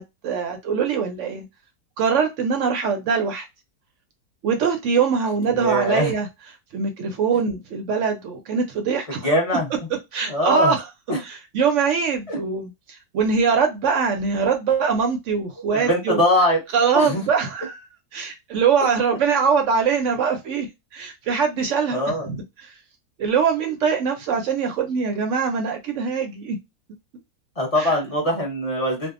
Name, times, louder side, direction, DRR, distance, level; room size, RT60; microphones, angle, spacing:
voice 1, 0.0-1.5 2.0-3.5 4.4-6.3 6.7-9.3 10.1-10.8 11.2-16.2 16.7-17.8 18.1-20.7 20.9-22.7 23.2-26.6 27.8-27.9, right 6 dB, 70° right, 0.7 m, -23 dB
voice 2, 5.5-6.1 9.1-9.7 10.2-10.7 11.1-11.2 12.3-12.4 15.7-16.6 16.9-17.2 21.9-22.3 27.6-29.1, equal, 30° left, 0.7 m, -22 dB
2.6 x 2.2 x 2.4 m
omnidirectional pair, 1.7 m